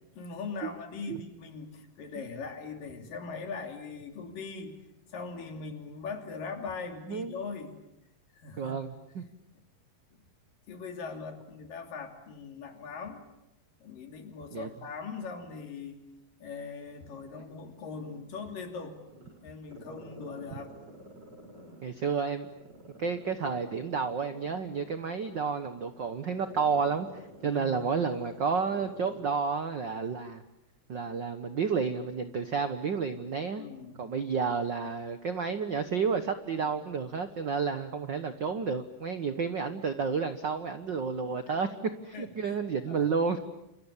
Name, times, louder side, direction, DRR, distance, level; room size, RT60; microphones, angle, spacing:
voice 1, 0.2-4.8 5.1-7.8 8.4-8.7 10.1-10.2 10.7-13.2 13.8-16.0 16.4-19.0 19.4-20.7 27.4-27.9 33.6-34.0 36.6-36.7 41.2-41.6 42.1-43.1, left 4 dB, 75° left, 5 dB, 4.6 m, -41 dB
voice 2, 7.1-7.4 8.6-9.3 14.5-14.7 21.8-22.5 23.0-30.4 30.9-33.6 34.0-41.7 42.0-43.4, right 5 dB, 80° right, 9 dB, 1.0 m, -31 dB
Growling, 16.9-18.6 19.0-22.0 22.5-29.3 29.6-29.7, right 1 dB, 30° right, 7.0 m, -50 dB
29.5 x 27.5 x 7.3 m, 0.89 s
omnidirectional pair, 4.0 m